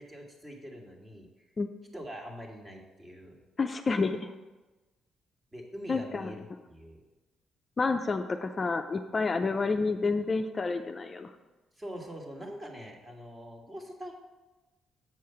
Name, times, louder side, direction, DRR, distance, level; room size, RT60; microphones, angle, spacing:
voice 1, 0.0-1.5 1.9-3.3 5.5-7.0 11.7-14.1, equal, 20° right, 1 dB, 1.6 m, -44 dB
voice 2, 3.6-4.3 5.9-6.3 7.8-11.3, left 4 dB, 35° left, 6 dB, 0.4 m, -29 dB
7.7 x 4.8 x 5.7 m, 1.2 s
cardioid pair, 90°, 0 cm